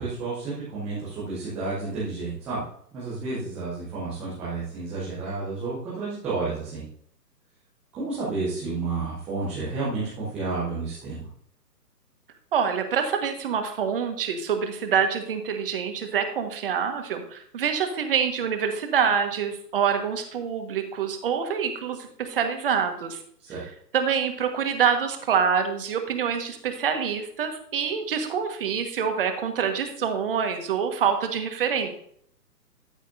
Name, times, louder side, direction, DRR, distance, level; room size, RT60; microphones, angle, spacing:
voice 1, 0.0-2.6 2.9-6.8 7.9-11.2 23.5-23.6, right 3 dB, 5° right, -10 dB, 0.6 m, -31 dB
voice 2, 12.5-23.2 23.5-31.9, right 7 dB, 35° right, 6 dB, 1.5 m, -26 dB
13.5 x 8.1 x 2.7 m, 0.65 s
figure-of-eight pair, 135°, 49 cm